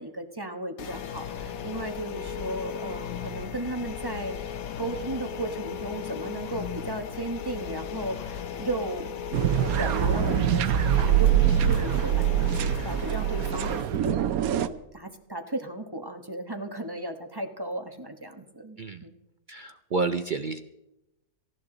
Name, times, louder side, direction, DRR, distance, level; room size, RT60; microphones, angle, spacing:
voice 1, 0.0-9.1 9.6-12.3 12.6-19.1, right 1 dB, 15° right, 5 dB, 1.1 m, -35 dB
sound 1, 0.8-13.8, left 7 dB, 65° left, 1.3 m, -36 dB
sound 2, 9.3-14.7, right 10 dB, 70° right, 1.1 m, -24 dB
voice 2, 19.5-20.6, right 4 dB, 55° right, 8 dB, 0.5 m, -29 dB
18.5 x 14.5 x 3.9 m, 0.90 s
omnidirectional pair, 1.6 m